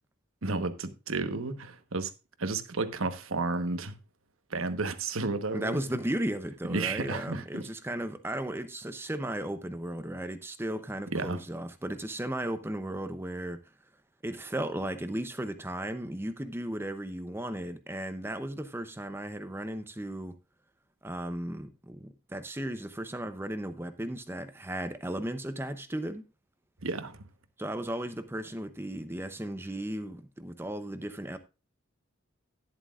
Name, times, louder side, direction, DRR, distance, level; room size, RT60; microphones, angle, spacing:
voice 1, 0.4-2.1 2.4-4.0 4.5-5.8 6.7-7.7 11.1-11.4 26.8-27.3, right 3 dB, 80° right, 1.2 m, -32 dB
voice 2, 5.5-13.6 14.2-20.3 21.0-26.2 27.6-31.4, right 1 dB, 10° right, 0.6 m, -35 dB
11.0 x 10.5 x 2.4 m
head